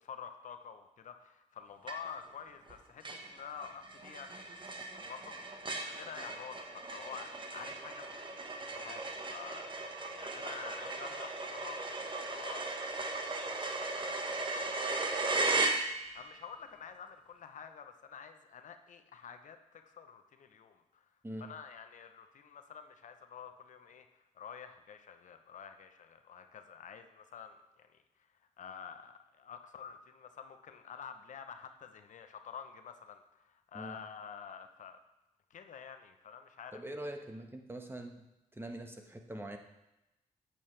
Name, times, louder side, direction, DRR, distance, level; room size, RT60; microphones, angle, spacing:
voice 1, 0.0-4.6 5.0-8.2 8.6-12.0 12.3-21.1 21.4-28.0 28.6-35.0 35.5-36.8, left 7 dB, 70° left, 7 dB, 0.8 m, -49 dB
sound 1, 1.9-2.3 2.7-2.8 3.0-16.3, right 3 dB, 35° right, 1.3 m, -37 dB
voice 2, 36.7-38.3 38.5-39.6, right 1 dB, 15° right, 4 dB, 1.3 m, -43 dB
8.7 x 8.7 x 3.3 m, 0.92 s
cardioid pair, 60°, 14 cm